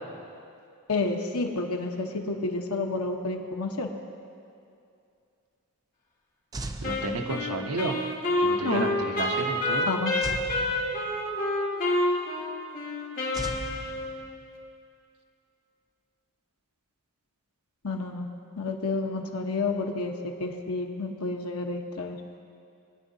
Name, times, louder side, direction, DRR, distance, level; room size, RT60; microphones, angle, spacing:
voice 1, 0.9-3.9 8.6-8.8 9.9-10.2 17.8-18.3 18.6-22.2, left 3 dB, 80° left, 2 dB, 1.0 m, -30 dB
sound 1, 6.5-7.8 10.2-11.5 13.3-14.6, right 2 dB, 15° right, 0.4 m, -38 dB
Wind instrument woodwind instrument, 6.8-14.3, left 1 dB, 40° left, 2.0 m, -28 dB
voice 2, 6.8-8.0 8.4-9.9, right 2 dB, 80° right, 2 dB, 0.9 m, -31 dB
20.5 x 9.9 x 2.7 m, 2.5 s
head